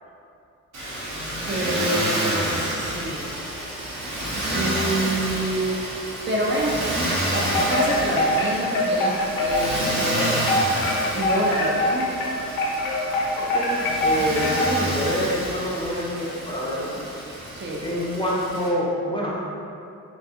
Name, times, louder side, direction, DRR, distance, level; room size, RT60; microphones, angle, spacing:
Motor vehicle (road), 0.7-18.7, right 1 dB, 55° right, 0.8 m, -29 dB
voice 1, 1.5-3.3 4.5-5.9 6.3-10.5 11.1-12.3 17.5-17.9, right 1 dB, 35° right, -4 dB, 0.4 m, -27 dB
Wind chime, 7.5-14.9, left 1 dB, 85° left, 0.5 m, -24 dB
voice 2, 13.3-17.0 17.8-19.4, equal, 15° left, -5 dB, 0.5 m, -27 dB
2.3 x 2.3 x 2.7 m, 2.6 s
cardioid pair, 65°, 33 cm